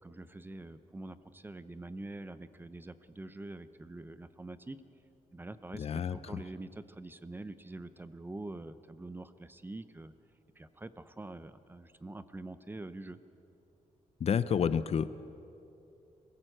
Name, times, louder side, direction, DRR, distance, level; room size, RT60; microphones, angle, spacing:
voice 1, 0.0-4.8 5.3-10.1 10.6-13.2, right 2 dB, 15° right, 13 dB, 0.6 m, -45 dB
voice 2, 5.8-6.2 14.2-15.3, left 7 dB, 50° left, 15 dB, 0.6 m, -30 dB
22.5 x 15.5 x 7.9 m, 2.8 s
cardioid pair, 125°, 14 cm